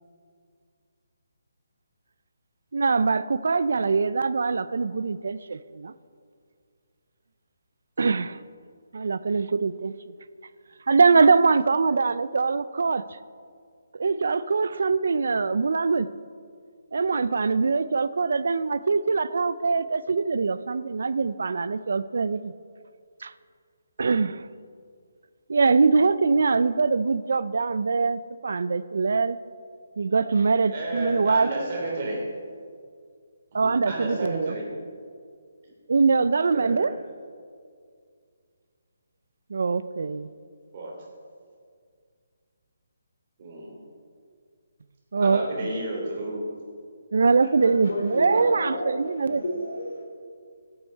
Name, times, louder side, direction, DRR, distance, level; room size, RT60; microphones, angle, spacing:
voice 1, 2.7-5.9 8.0-8.4 8.9-9.9 10.9-13.0 14.0-16.1 16.9-22.5 23.2-23.3 24.0-24.5 25.5-29.4 30.0-31.5 33.5-34.5 35.9-36.9 39.5-40.3 45.1-45.5 47.1-49.4, right 4 dB, 70° right, 15 dB, 0.4 m, -23 dB
voice 2, 30.6-32.2 33.5-34.7 36.5-37.0 40.0-40.1 40.7-40.9 43.4-43.8 45.2-46.4 48.3-48.4, right 1 dB, 35° right, -2 dB, 3.1 m, -32 dB
voice 3, 47.6-50.0, left 1 dB, 75° left, 0 dB, 3.7 m, -32 dB
15.0 x 8.7 x 4.5 m, 2.1 s
hypercardioid pair, 170°, 0 cm